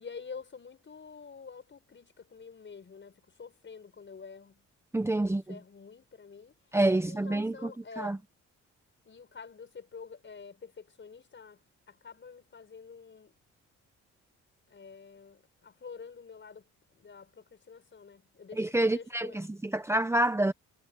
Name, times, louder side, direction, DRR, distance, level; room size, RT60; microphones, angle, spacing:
voice 1, 0.0-4.7 5.2-6.6 6.9-8.2 9.0-13.4 14.7-19.5, left 5 dB, 40° left, 6.2 m, -48 dB
voice 2, 4.9-5.5 6.7-7.7 8.0-8.2 18.6-19.5 19.7-20.5, right 1 dB, 10° right, 1.0 m, -27 dB
cardioid pair, 90°, 30 cm